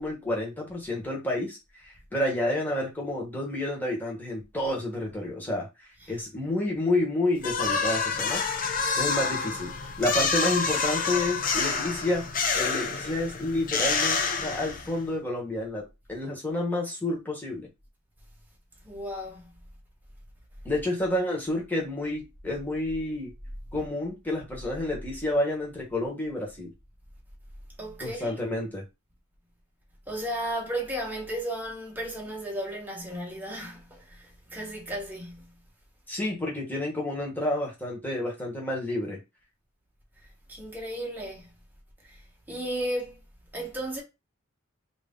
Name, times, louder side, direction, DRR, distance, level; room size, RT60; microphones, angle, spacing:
voice 1, 0.0-5.7 6.1-8.4 9.0-12.2 12.5-17.7 20.6-23.3 23.7-26.7 28.0-28.8 36.1-39.2, left 1 dB, 10° left, 1.3 m, -29 dB
sound 1, 7.4-15.1, left 5 dB, 40° left, 0.6 m, -28 dB
voice 2, 18.8-19.5 27.8-28.4 30.1-35.5 40.5-41.5 42.1-42.2 42.5-43.2 43.5-44.0, right 1 dB, 10° right, 1.2 m, -34 dB
3.1 x 2.8 x 3.7 m
head